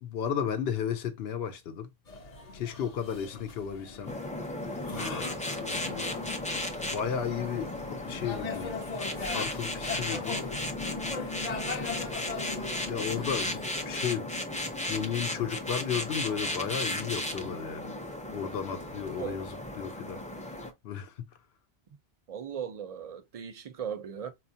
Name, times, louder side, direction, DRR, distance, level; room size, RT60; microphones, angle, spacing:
voice 1, 0.0-1.9 2.5-4.2 5.6-6.1 6.8-8.7 9.3-10.4 12.5-14.3 14.8-17.9 18.3-20.2 20.5-20.6 20.8-21.1, left 8 dB, 75° left, 0.9 m, -34 dB
sound 1, 2.1-13.7, left 4 dB, 45° left, 0.7 m, -40 dB
sound 2, 4.1-20.7, left 1 dB, 10° left, 0.3 m, -35 dB
voice 2, 6.0-6.4 11.5-11.8 19.2-19.4 22.3-24.3, right 8 dB, 50° right, 0.5 m, -39 dB
4.4 x 2.4 x 2.7 m
omnidirectional pair, 1.1 m